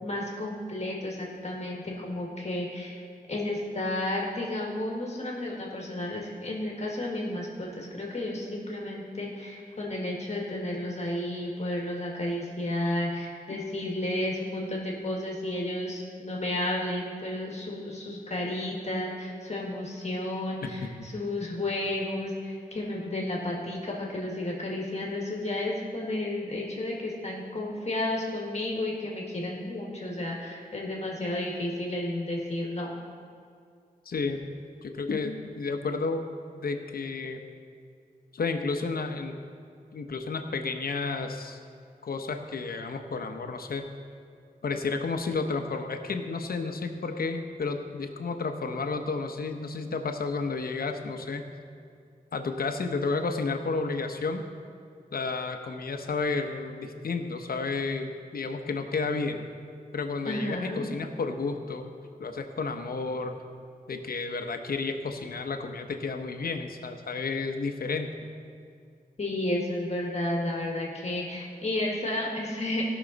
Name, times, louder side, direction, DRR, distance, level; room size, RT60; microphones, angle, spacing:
voice 1, 0.0-32.9 60.3-60.8 69.2-72.8, left 1 dB, 45° left, -2 dB, 1.8 m, -32 dB
voice 2, 20.6-21.1 34.0-34.5 34.8-36.2 36.5-37.4 38.3-39.4 39.9-41.6 42.0-43.8 44.6-51.5 52.3-54.4 55.1-59.5 59.9-61.9 62.2-63.4 63.9-68.2, left 4 dB, 75° left, 6 dB, 0.9 m, -31 dB
16.5 x 6.2 x 4.0 m, 2.3 s
wide cardioid pair, 100°, 16 cm